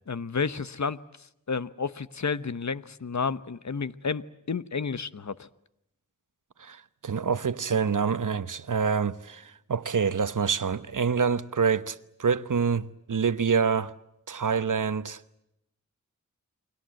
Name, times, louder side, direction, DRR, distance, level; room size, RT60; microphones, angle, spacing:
voice 1, 0.1-1.0 1.5-5.5, left 5 dB, 65° left, 1.0 m, -31 dB
voice 2, 6.6-13.9 14.3-15.2, right 6 dB, 80° right, 1.0 m, -26 dB
30.0 x 23.5 x 7.7 m
wide cardioid pair, 65°, 31 cm